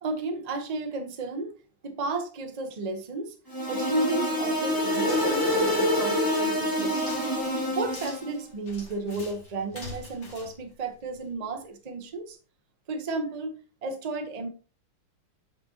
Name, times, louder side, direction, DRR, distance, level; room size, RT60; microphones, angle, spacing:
voice 1, 0.0-1.5 1.8-3.3 3.7-7.0 7.7-12.4 12.9-14.5, right 2 dB, 45° right, 5 dB, 0.5 m, -33 dB
sound 1, 3.5-8.3, left 1 dB, 10° left, 1.1 m, -26 dB
sound 2, 4.8-11.4, left 2 dB, 35° left, 1.9 m, -46 dB
8.1 x 5.4 x 2.8 m, 0.35 s
omnidirectional pair, 2.4 m